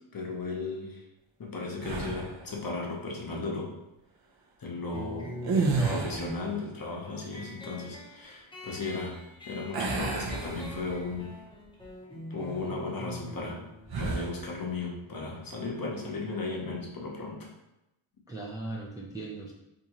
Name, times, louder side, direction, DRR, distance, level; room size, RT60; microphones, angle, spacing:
voice 1, 0.1-1.0 1.4-3.7 4.6-5.3 5.9-9.2 9.5-11.3 12.1-13.6 14.0-17.5, left 3 dB, 45° left, -1 dB, 0.8 m, -35 dB
sound 1, 1.8-2.5 5.4-6.5 9.7-11.2 11.6-11.8 13.9-14.4, right 4 dB, 50° right, 0.6 m, -30 dB
sound 2, 4.9-16.0, left 1 dB, 10° left, 0.8 m, -45 dB
voice 2, 5.5-6.1 18.3-19.5, right 1 dB, 10° right, -4 dB, 0.4 m, -38 dB
3.6 x 2.7 x 2.9 m, 0.92 s
cardioid pair, 90°, 49 cm